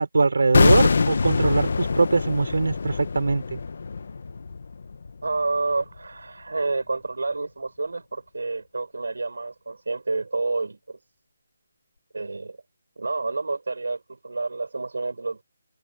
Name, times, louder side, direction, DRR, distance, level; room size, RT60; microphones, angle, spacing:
voice 1, 0.0-3.6, right 3 dB, 65° right, 4.4 m, -22 dB
sound 1, 0.5-5.6 5.8-6.0, left 4 dB, 40° left, 1.0 m, -24 dB
voice 2, 5.2-11.0 12.1-12.6 13.0-15.4, right 3 dB, 85° right, 4.1 m, -29 dB
hypercardioid pair, 180°, 0 cm